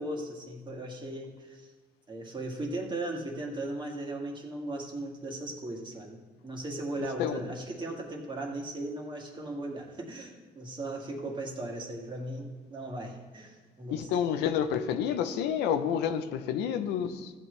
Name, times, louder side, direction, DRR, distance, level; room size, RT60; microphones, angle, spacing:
voice 1, 0.0-1.7 2.1-14.1, right 1 dB, 25° right, 0 dB, 2.0 m, -37 dB
voice 2, 13.9-17.3, left 8 dB, 90° left, 9 dB, 0.8 m, -29 dB
14.0 x 8.7 x 3.3 m, 1.3 s
cardioid pair, 110°, 17 cm